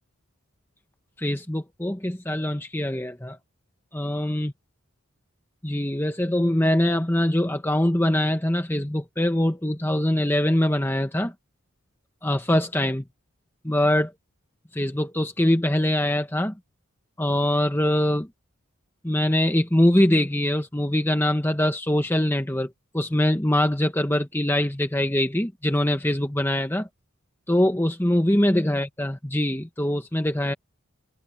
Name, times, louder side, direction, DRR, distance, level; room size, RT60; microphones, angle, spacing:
voice 1, 1.2-3.4 3.9-4.5 5.6-11.3 12.2-13.0 13.6-14.1 14.7-16.5 17.2-18.3 19.0-22.7 22.9-26.9 27.5-30.5, left 1 dB, 10° left, 1.1 m, -23 dB
head